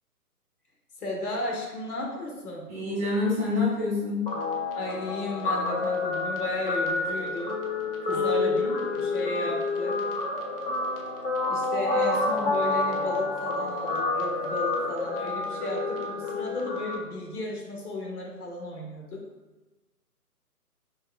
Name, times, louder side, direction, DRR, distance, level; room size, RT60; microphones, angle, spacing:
voice 1, 1.0-2.7 4.7-7.6 8.0-8.6 9.0-10.0 11.5-19.2, left 1 dB, 70° left, -1 dB, 1.1 m, -34 dB
voice 2, 2.7-4.3 8.1-8.8, left 3 dB, 10° right, -11 dB, 0.7 m, -28 dB
Guitar, 4.3-17.0, left 3 dB, 40° left, 0.6 m, -28 dB
3.1 x 2.8 x 3.8 m, 1.1 s
figure-of-eight pair, 150°, 47 cm